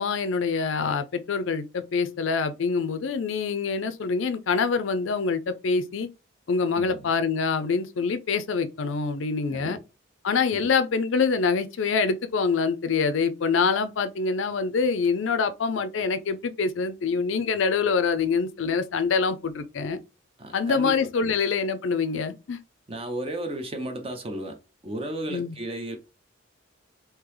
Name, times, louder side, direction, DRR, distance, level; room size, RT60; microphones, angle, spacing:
voice 1, 0.0-6.1 6.5-9.8 10.2-20.0 20.5-22.6 25.3-25.5, left 5 dB, 70° left, 0.4 m, -25 dB
voice 2, 6.7-7.1 9.5-9.8 10.5-10.7 20.4-21.3 22.9-26.0, right 1 dB, 30° right, 0.7 m, -34 dB
3.7 x 2.8 x 3.0 m
head